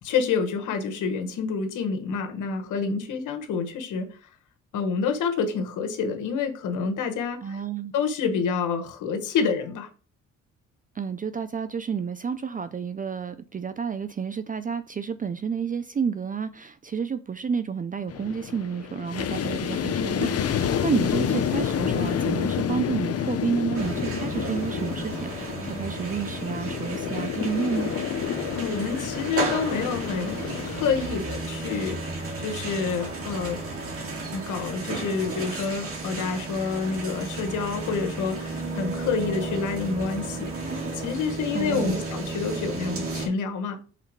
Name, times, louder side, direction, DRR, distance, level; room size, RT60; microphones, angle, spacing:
voice 1, 0.0-4.1 4.7-7.6 7.9-9.9 28.5-30.4 30.7-33.6 34.3-40.5 40.9-43.8, left 5 dB, 80° left, 1.3 m, -28 dB
voice 2, 7.4-7.9 11.0-27.9 41.5-42.0, right 6 dB, 30° right, 0.4 m, -30 dB
sound 1, 18.1-31.1, left 8 dB, 55° left, 0.8 m, -29 dB
sound 2, 23.7-43.3, right 2 dB, 50° right, 2.2 m, -33 dB
5.8 x 3.9 x 4.6 m
cardioid pair, 90°, 30 cm